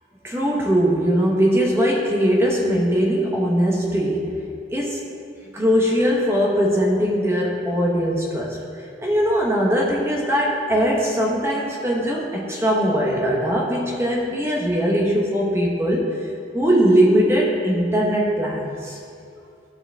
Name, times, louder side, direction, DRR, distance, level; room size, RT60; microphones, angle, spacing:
voice 1, 0.2-4.3 4.7-5.0 5.5-8.6 9.0-16.1 16.5-19.0, equal, 15° right, -3 dB, 0.9 m, -20 dB
13.5 x 4.8 x 3.4 m, 2.4 s
head